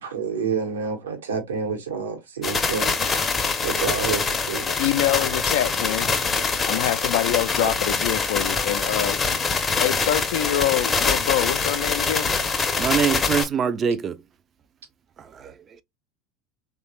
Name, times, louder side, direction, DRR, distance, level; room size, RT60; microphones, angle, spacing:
voice 1, 0.0-3.2 3.6-4.7 7.6-7.7, right 6 dB, 80° right, 0.9 m, -29 dB
sound 1, 2.4-13.5, left 4 dB, 25° left, 0.6 m, -24 dB
voice 2, 4.7-6.1 6.6-9.3 9.8-12.3, left 13 dB, 70° left, 0.3 m, -25 dB
voice 3, 12.8-14.2 15.2-15.8, right 7 dB, 35° right, 0.4 m, -24 dB
3.1 x 2.2 x 2.9 m
hypercardioid pair, 80°, 0 cm